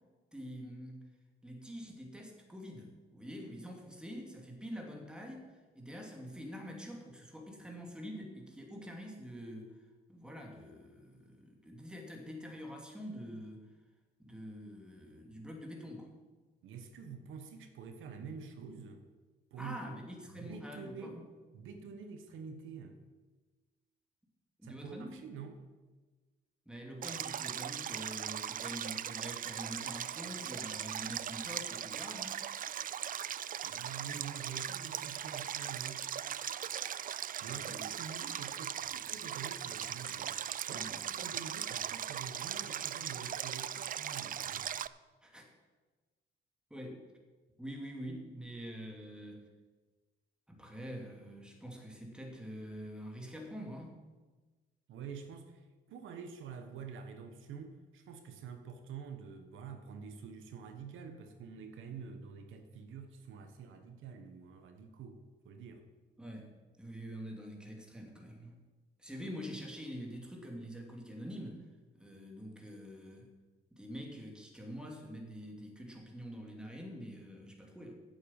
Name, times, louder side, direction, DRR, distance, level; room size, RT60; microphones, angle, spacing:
voice 1, 0.3-1.1 1.4-13.7 14.2-16.1 19.6-21.3 24.6-25.1 26.7-32.4 37.7-37.8 40.7-41.4 45.2-45.5 46.7-47.1 47.6-49.5 50.5-54.0 66.2-66.5 66.8-68.6 69.0-71.7 71.9-73.3 73.7-77.9, equal, 5° right, 1 dB, 2.7 m, -46 dB
voice 2, 16.6-19.0 19.5-20.0 20.3-21.2 21.5-23.0 24.6-25.6 33.6-36.0 37.4-40.4 40.7-44.7 54.9-65.9, right 6 dB, 80° right, 7 dB, 1.3 m, -47 dB
Stream, 27.0-44.9, right 9 dB, 45° right, 0.4 m, -39 dB
8.9 x 7.7 x 9.0 m, 1.3 s
cardioid pair, 90°, 20 cm